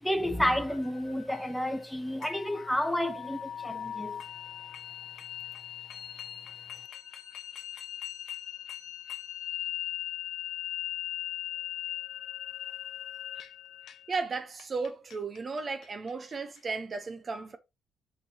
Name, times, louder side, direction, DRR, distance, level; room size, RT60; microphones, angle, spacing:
voice 1, 0.0-4.2, left 1 dB, 5° left, 1.0 m, -30 dB
sound 1, 0.7-16.6, left 12 dB, 70° left, 0.9 m, -40 dB
voice 2, 14.1-17.6, right 4 dB, 40° right, 0.9 m, -35 dB
5.8 x 5.6 x 2.9 m
cardioid pair, 90°, 0 cm